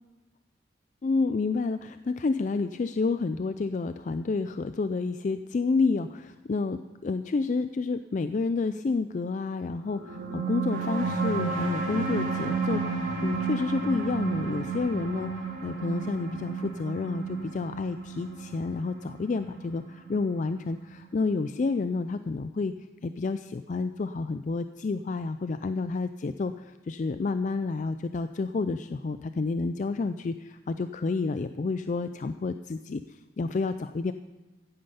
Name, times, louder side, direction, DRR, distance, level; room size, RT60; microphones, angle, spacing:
voice 1, 1.0-22.7 23.0-26.5 26.9-33.0 33.4-34.1, left 4 dB, 40° left, 10 dB, 0.3 m, -29 dB
sound 1, 9.9-20.9, right 5 dB, 90° right, 2.6 m, -32 dB
15.0 x 8.9 x 5.6 m, 1.1 s
head